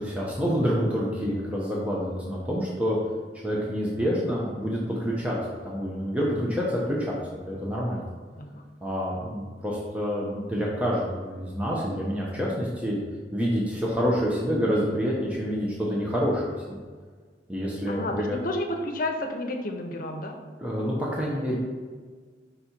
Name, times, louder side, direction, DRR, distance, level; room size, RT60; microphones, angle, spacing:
voice 1, 0.0-3.0 3.4-5.4 5.6-7.2 7.5-8.1 8.8-13.0 13.3-16.8 17.5-18.4 20.6-21.6, equal, 10° right, -5 dB, 0.8 m, -27 dB
voice 2, 17.9-20.4, left 1 dB, 55° left, 3 dB, 0.8 m, -31 dB
5.6 x 4.2 x 4.4 m, 1.5 s
head